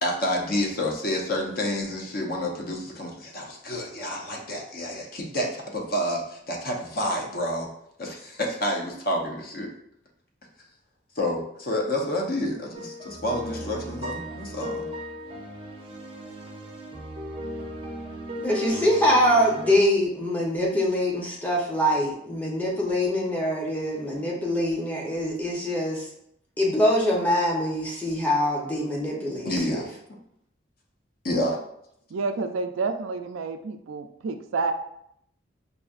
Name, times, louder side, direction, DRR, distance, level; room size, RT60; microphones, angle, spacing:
voice 1, 0.0-7.7 8.0-9.7 11.2-14.9 29.4-29.9 31.2-31.6, left 1 dB, 50° left, 1 dB, 0.7 m, -29 dB
sound 1, 12.7-19.8, equal, 25° right, 0.5 m, -36 dB
voice 2, 18.4-26.1 26.6-29.8, equal, 10° left, -3 dB, 0.7 m, -24 dB
voice 3, 32.1-34.7, right 4 dB, 85° right, 8 dB, 0.4 m, -29 dB
4.9 x 2.6 x 2.4 m, 0.73 s
head